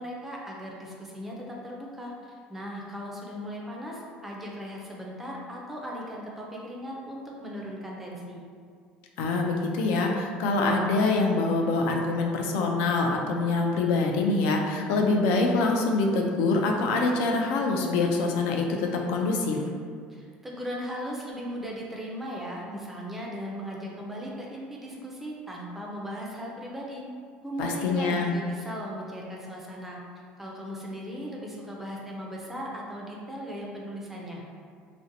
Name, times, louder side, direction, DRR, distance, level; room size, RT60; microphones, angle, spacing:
voice 1, 0.0-2.1 2.5-8.4 20.1-27.0 27.4-30.0 30.4-34.4, equal, 5° right, -3 dB, 0.3 m, -37 dB
voice 2, 9.2-19.6 27.6-28.3, left 3 dB, 80° left, 1 dB, 0.3 m, -25 dB
2.6 x 2.0 x 2.6 m, 2.1 s
cardioid pair, 160°, 3 cm